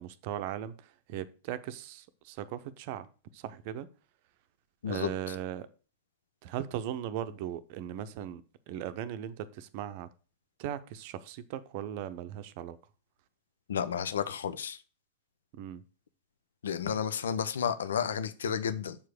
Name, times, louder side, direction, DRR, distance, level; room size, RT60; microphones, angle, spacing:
voice 1, 0.0-3.1 3.3-3.9 4.9-5.7 6.4-8.4 8.7-10.1 10.6-12.8 15.5-15.8, right 10 dB, 45° right, 0.7 m, -38 dB
voice 2, 13.7-14.8 16.6-19.0, left 7 dB, 65° left, 0.6 m, -31 dB
7.2 x 4.7 x 6.4 m
figure-of-eight pair, 90°, 0 cm